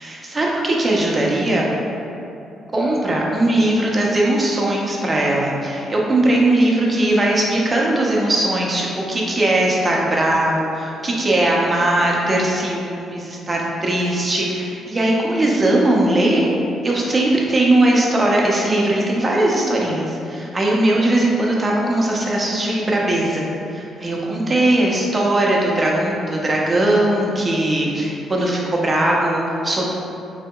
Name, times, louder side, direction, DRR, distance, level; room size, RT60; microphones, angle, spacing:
voice 1, 0.0-1.7 2.7-16.5 16.8-29.9, right 1 dB, 25° right, -3 dB, 0.6 m, -19 dB
3.4 x 2.8 x 2.2 m, 2.7 s
cardioid pair, 90°, 0 cm